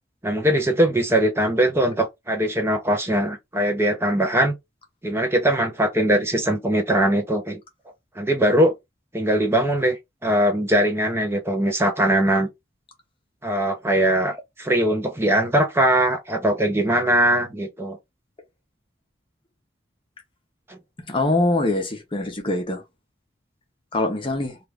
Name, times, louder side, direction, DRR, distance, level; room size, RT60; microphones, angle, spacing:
voice 1, 0.2-4.5 5.0-7.6 8.2-8.7 9.1-12.5 13.4-18.0 20.7-20.8, right 1 dB, 15° right, 0.6 m, -21 dB
voice 2, 21.0-22.8 23.9-24.6, left 2 dB, 30° left, 0.8 m, -23 dB
3.1 x 2.4 x 3.2 m
head